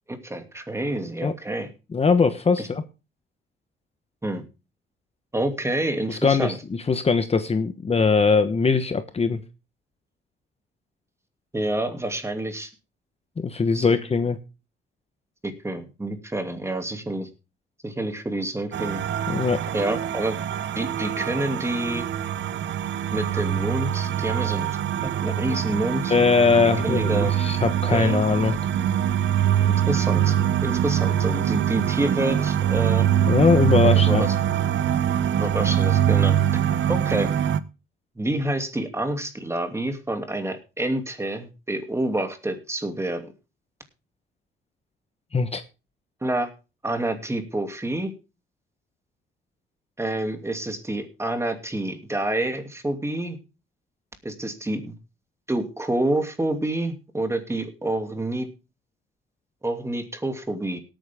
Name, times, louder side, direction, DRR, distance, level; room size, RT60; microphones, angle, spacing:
voice 1, 0.1-1.7 2.6-2.7 4.2-4.4 5.3-6.6 11.5-12.7 13.7-14.0 15.4-17.3 17.8-19.0 19.7-20.4 20.7-22.1 23.1-24.7 25.0-26.1 26.8-27.3 27.9-28.2 29.9-30.3 30.6-33.1 34.1-34.3 35.4-36.4 36.9-37.3 38.2-43.3 46.2-46.5 46.8-48.1 50.0-53.4 54.2-54.9 55.5-58.5 59.6-60.8, right 1 dB, 15° right, 6 dB, 2.6 m, -28 dB
voice 2, 1.9-2.8 6.1-6.5 6.9-9.4 13.4-14.4 19.3-19.6 26.1-28.6 33.3-34.2 45.3-45.6, left 4 dB, 30° left, 10 dB, 1.1 m, -21 dB
sound 1, 18.7-37.6, right 10 dB, 70° right, 0.9 m, -23 dB
18.0 x 9.1 x 3.6 m, 0.30 s
cardioid pair, 90°, 20 cm